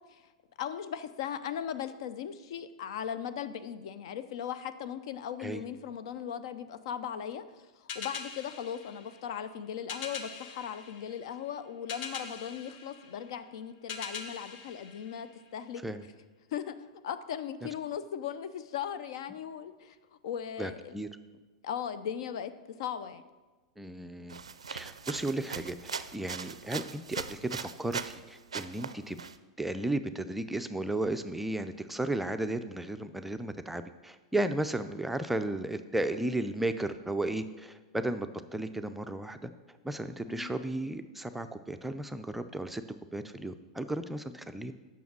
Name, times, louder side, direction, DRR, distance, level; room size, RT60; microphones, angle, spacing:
voice 1, 0.6-7.4 7.8-15.8 16.5-20.0 20.2-20.9 21.6-23.2 40.3-40.5, left 9 dB, 65° left, 12 dB, 0.5 m, -38 dB
sound 1, 7.9-15.8, left 5 dB, 45° left, 0.8 m, -44 dB
voice 2, 20.6-21.1 23.8-24.4 24.7-29.2 29.6-39.5 39.8-42.8 43.1-44.7, right 1 dB, 5° right, 9 dB, 0.4 m, -34 dB
sound 2, 24.3-28.2 28.5-29.3, right 6 dB, 90° right, 0.4 m, -40 dB
7.0 x 5.9 x 6.0 m, 1.3 s
hypercardioid pair, 105°, 3 cm